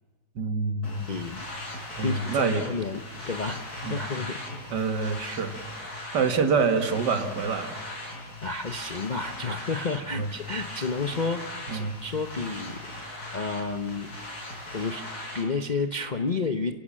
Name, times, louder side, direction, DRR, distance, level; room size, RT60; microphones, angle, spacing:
voice 1, 0.4-1.1 2.0-2.6 3.8-4.0 4.7-5.6 6.1-7.8 10.2-10.3 11.7-11.9, right 5 dB, 65° right, 8 dB, 2.2 m, -26 dB
sound 1, 0.8-15.4, left 1 dB, 55° left, 5.4 m, -39 dB
voice 2, 1.1-1.5 2.0-3.0 3.3-3.6 3.9-4.4 8.4-12.8 13.3-14.3 14.7-15.1 15.3-16.7, left 4 dB, 35° left, 7 dB, 0.7 m, -31 dB
29.5 x 17.0 x 7.5 m, 1.4 s
omnidirectional pair, 2.0 m